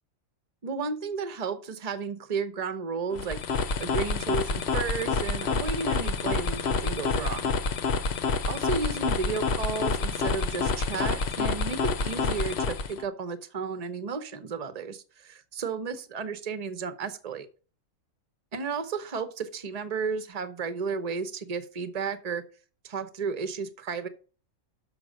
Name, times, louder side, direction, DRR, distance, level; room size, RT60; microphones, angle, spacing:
voice 1, 0.6-3.4 3.8-7.5 8.5-17.5 18.5-22.4 22.8-24.1, right 5 dB, 30° right, 11 dB, 0.9 m, -33 dB
sound 1, 3.1-13.0, left 4 dB, 55° left, 1.0 m, -28 dB
6.8 x 5.8 x 6.3 m, 0.37 s
omnidirectional pair, 1.5 m